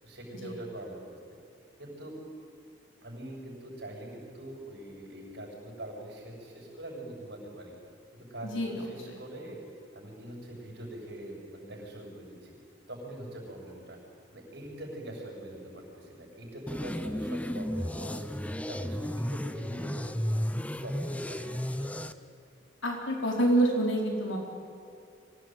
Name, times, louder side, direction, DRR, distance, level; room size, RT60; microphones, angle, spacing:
voice 1, 0.0-1.0 1.8-2.2 3.0-7.8 8.1-9.6 9.9-12.6 12.9-14.0 14.3-18.3 18.7-20.4 20.6-22.0, right 1 dB, 60° right, -1 dB, 7.3 m, -43 dB
voice 2, 8.4-8.7 22.8-24.4, right 1 dB, 80° left, 1 dB, 4.6 m, -27 dB
sound 1, 16.7-22.1, equal, 5° left, 0.6 m, -33 dB
24.5 x 17.0 x 9.3 m, 2.6 s
head